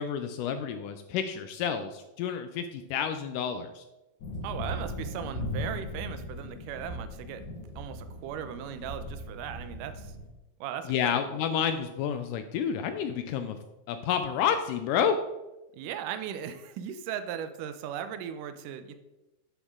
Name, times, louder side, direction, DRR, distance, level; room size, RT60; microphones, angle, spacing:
voice 1, 0.0-3.9 10.9-13.6 13.9-15.2, left 8 dB, 80° left, 8 dB, 1.9 m, -29 dB
sound 1, 4.2-10.3, left 1 dB, 65° left, 2.7 m, -38 dB
voice 2, 4.4-7.4 7.8-10.1 10.6-11.4 15.7-18.9, right 9 dB, 80° right, 10 dB, 2.1 m, -38 dB
10.0 x 6.3 x 3.6 m, 1.0 s
omnidirectional pair, 4.0 m